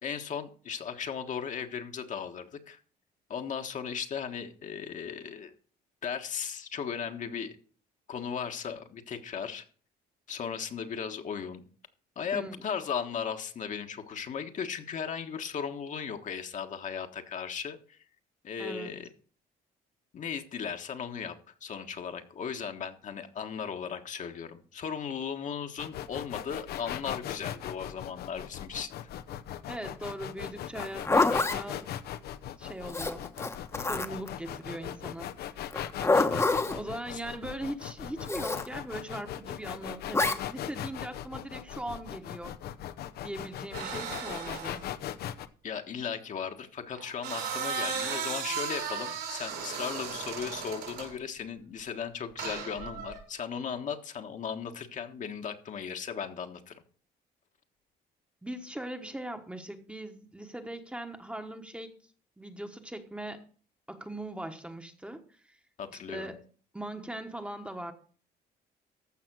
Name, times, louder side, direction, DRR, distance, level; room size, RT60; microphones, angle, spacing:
voice 1, 0.0-2.8 3.3-5.5 6.0-7.6 8.1-9.6 10.3-11.6 12.1-18.0 18.4-19.1 20.1-21.3 21.6-28.9 36.6-36.7 37.1-37.2 45.6-56.7 65.8-66.3, left 7 dB, 50° left, 5 dB, 1.5 m, -36 dB
voice 2, 12.3-12.7 18.6-19.0 29.7-31.9 32.6-33.2 33.8-35.5 36.7-42.6 43.2-44.8 58.4-61.9 62.4-63.5 63.9-65.6 65.9-66.4 66.7-67.9, right 1 dB, 5° right, 6 dB, 1.2 m, -40 dB
sound 1, 25.8-45.5, left 11 dB, 70° left, 0.8 m, -39 dB
Zipper (clothing), 30.7-31.6 32.9-34.3 35.7-36.8 38.3-38.7 40.1-40.4, left 3 dB, 15° left, 1.1 m, -26 dB
sound 2, 43.7-44.8 46.9-51.1 52.4-53.2, right 6 dB, 80° right, 5.6 m, -36 dB
14.5 x 6.0 x 6.1 m, 0.43 s
cardioid pair, 110°, 17 cm